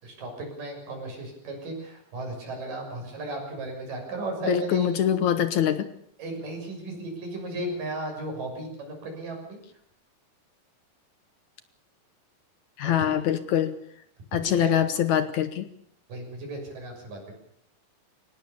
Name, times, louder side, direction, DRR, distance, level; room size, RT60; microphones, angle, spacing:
voice 1, 0.0-4.9 6.2-9.6 12.8-13.2 14.4-14.8 16.1-17.3, right 2 dB, 70° right, 2 dB, 8.2 m, -35 dB
voice 2, 4.5-5.9 12.8-13.8 14.3-15.7, left 10 dB, 65° left, 12 dB, 2.2 m, -24 dB
24.0 x 18.5 x 6.9 m, 0.70 s
omnidirectional pair, 4.0 m